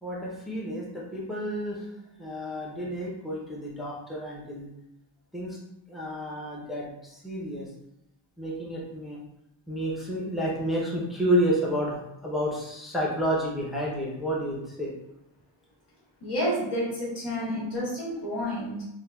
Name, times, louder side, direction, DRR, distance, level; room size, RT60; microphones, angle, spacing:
voice 1, 0.0-1.9 2.2-4.7 5.3-5.6 5.9-7.7 8.4-9.2 9.7-14.9, equal, ahead, -5 dB, 0.5 m, -30 dB
voice 2, 16.2-18.8, equal, 70° left, -7 dB, 1.5 m, -30 dB
3.8 x 2.2 x 2.2 m, 0.83 s
wide cardioid pair, 145°, 43 cm